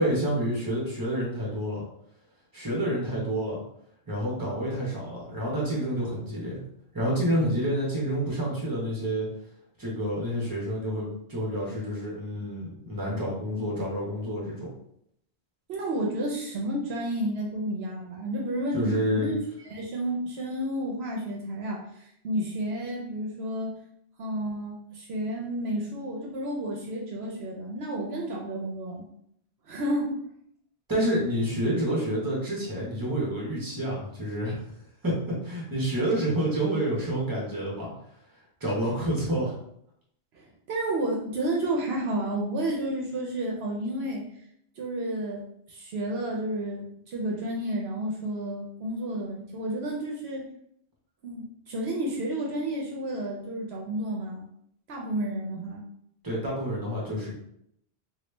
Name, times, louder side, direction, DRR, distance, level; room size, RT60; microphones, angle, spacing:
voice 1, 0.0-1.8 2.5-3.6 4.1-6.6 6.9-9.3 9.8-14.7 18.7-19.3 30.9-34.7 35.0-37.9 38.6-39.5 56.2-57.3, right 1 dB, 20° right, -4 dB, 1.0 m, -28 dB
voice 2, 15.7-19.4 19.7-23.7 24.2-29.1 29.7-30.2 40.3-44.2 44.8-45.4 45.7-50.4 51.2-54.5 54.9-55.8, right 1 dB, 75° right, -1 dB, 0.8 m, -31 dB
3.0 x 2.4 x 3.2 m, 0.72 s
omnidirectional pair, 1.1 m